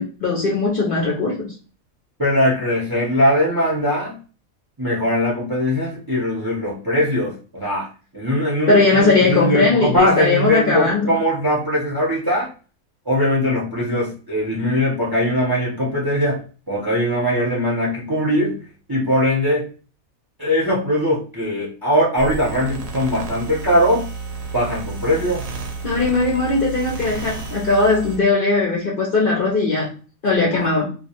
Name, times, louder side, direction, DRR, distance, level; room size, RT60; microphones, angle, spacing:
voice 1, 0.0-1.5 8.7-11.2 25.8-29.9 30.2-30.9, left 3 dB, 60° left, -3 dB, 0.6 m, -19 dB
voice 2, 2.2-4.2 4.8-7.9 8.1-12.5 13.1-18.6 18.9-19.7 20.4-24.1 24.5-25.4 30.5-30.8, equal, 25° right, -4 dB, 0.5 m, -20 dB
sound 1, 22.2-28.2, right 4 dB, 60° right, 0.7 m, -31 dB
2.2 x 2.2 x 2.8 m, 0.37 s
omnidirectional pair, 1.4 m